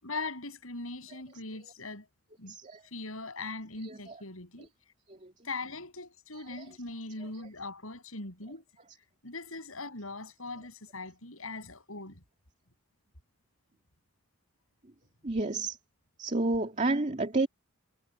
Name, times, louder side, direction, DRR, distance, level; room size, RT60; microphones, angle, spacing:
voice 1, 0.0-2.1 2.4-2.6 2.8-4.7 5.4-8.6 9.2-12.2, left 3 dB, 80° left, 7.1 m, -40 dB
voice 2, 2.5-2.8 3.8-4.1 15.2-15.8 16.2-17.5, right 2 dB, 35° right, 2.4 m, -30 dB
head